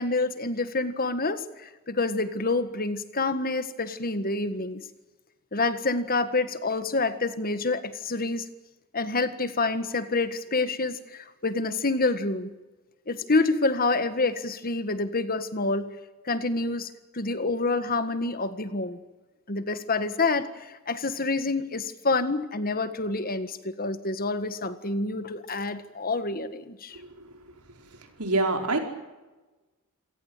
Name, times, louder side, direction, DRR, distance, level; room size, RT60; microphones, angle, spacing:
voice 1, 0.0-4.8 5.5-8.5 8.9-12.5 13.1-15.9 16.3-19.0 19.5-27.0, left 3 dB, 40° left, 11 dB, 1.7 m, -27 dB
voice 2, 28.2-28.8, right 2 dB, 80° right, 4 dB, 4.8 m, -25 dB
27.5 x 17.5 x 9.1 m, 1.1 s
head